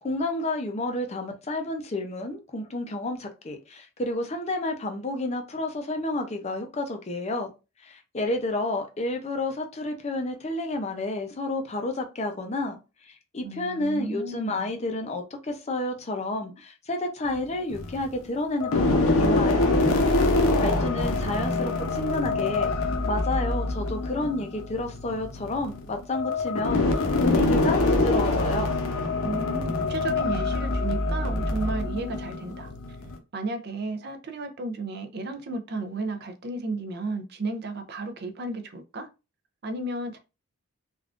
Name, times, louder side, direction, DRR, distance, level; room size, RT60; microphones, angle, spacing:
voice 1, 0.0-7.5 7.8-12.8 13.0-19.7 20.6-22.7 23.0-28.7, left 2 dB, 30° left, 0.4 m, -30 dB
voice 2, 13.4-14.7 20.2-20.9 29.2-32.7 33.3-39.1 39.6-40.2, right 2 dB, 45° right, 0.4 m, -33 dB
sound 1, 17.3-18.1 18.6-33.2, left 2 dB, 70° left, 0.6 m, -25 dB
3.4 x 2.4 x 2.4 m
head